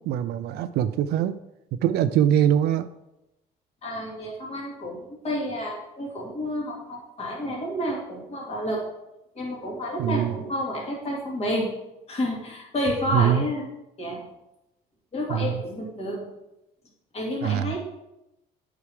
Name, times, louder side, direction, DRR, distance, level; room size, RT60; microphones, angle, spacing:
voice 1, 0.1-1.4 1.8-2.9 10.0-10.4 13.0-13.5 15.3-15.6 17.4-17.8, right 10 dB, 75° right, 11 dB, 0.4 m, -23 dB
voice 2, 3.8-8.9 9.3-11.7 12.1-13.7 14.0-14.2 15.1-16.3 17.1-17.8, equal, 35° left, -2 dB, 2.6 m, -30 dB
8.5 x 4.8 x 4.8 m, 0.90 s
cardioid pair, 110°, 17 cm